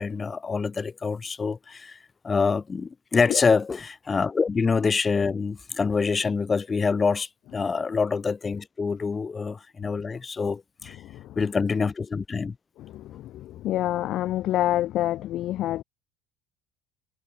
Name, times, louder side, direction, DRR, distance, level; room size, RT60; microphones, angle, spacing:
voice 1, 0.0-2.0 2.2-11.0 11.4-12.5, left 5 dB, 20° left, 4.1 m, -26 dB
voice 2, 11.0-11.4 12.8-15.8, left 14 dB, 50° left, 5.1 m, -28 dB
cardioid pair, 150°, 0 cm